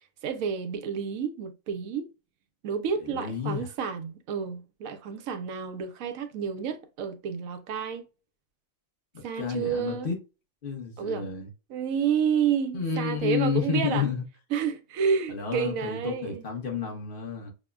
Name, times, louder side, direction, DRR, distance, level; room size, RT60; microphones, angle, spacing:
voice 1, 0.2-2.1 2.6-8.0 9.2-10.1 11.0-11.3 11.7-14.1 14.5-16.4, right 7 dB, 85° right, 1.0 m, -30 dB
voice 2, 3.0-3.7 9.1-10.2 10.6-11.5 12.7-14.2 15.3-17.5, left 6 dB, 45° left, 1.0 m, -30 dB
6.0 x 2.1 x 2.3 m
omnidirectional pair, 1.4 m